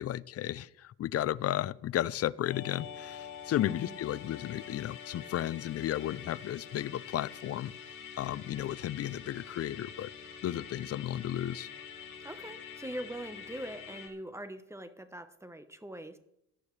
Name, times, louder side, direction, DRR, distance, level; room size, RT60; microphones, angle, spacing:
voice 1, 0.0-7.7 8.2-10.1 10.4-11.7, left 12 dB, 55° left, 20 dB, 0.5 m, -33 dB
Musical instrument, 2.4-14.1, left 7 dB, 80° left, 2.6 m, -46 dB
voice 2, 3.6-4.0 12.2-16.2, right 1 dB, 10° right, 10 dB, 1.0 m, -42 dB
17.5 x 12.0 x 3.3 m, 0.82 s
cardioid pair, 90°, 30 cm